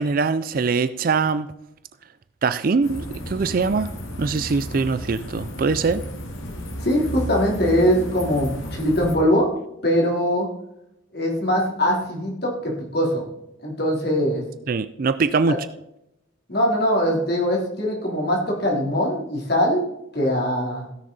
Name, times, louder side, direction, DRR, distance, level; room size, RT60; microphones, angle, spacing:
voice 1, 0.0-1.5 2.4-3.9 4.2-6.0 14.7-15.7, right 4 dB, 45° right, 13 dB, 0.4 m, -22 dB
sound 1, 2.8-9.2, equal, 85° left, 2.0 m, -33 dB
voice 2, 6.8-9.5 9.8-10.5 11.1-13.2 13.6-14.4 16.5-19.8 20.1-20.8, equal, 50° left, -1 dB, 3.3 m, -22 dB
16.5 x 6.5 x 4.0 m, 0.83 s
head